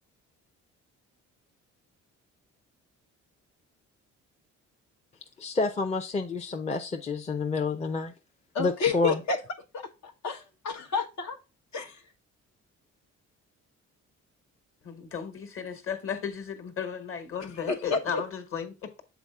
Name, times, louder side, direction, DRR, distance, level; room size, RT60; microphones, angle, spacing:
voice 1, 5.4-8.1 8.6-9.2, left 3 dB, 20° left, 0.6 m, -29 dB
voice 2, 8.5-9.4 9.7-11.4 11.7-12.0 17.7-18.2, left 5 dB, 65° left, 1.0 m, -30 dB
voice 3, 14.8-19.0, left 7 dB, 45° left, 1.5 m, -35 dB
7.0 x 4.1 x 3.6 m
cardioid pair, 90°, 30 cm